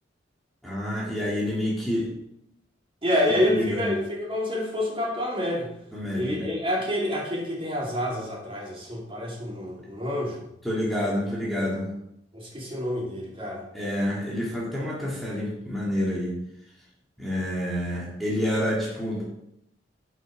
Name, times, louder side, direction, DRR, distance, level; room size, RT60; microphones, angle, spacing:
voice 1, 0.6-2.1 3.3-3.9 5.9-6.5 10.6-11.9 13.7-16.4 17.2-19.3, left 1 dB, ahead, -6 dB, 2.0 m, -28 dB
voice 2, 3.0-5.7 6.1-10.4 12.3-13.6, left 1 dB, 30° right, -3 dB, 2.6 m, -28 dB
9.9 x 5.3 x 4.9 m, 0.80 s
head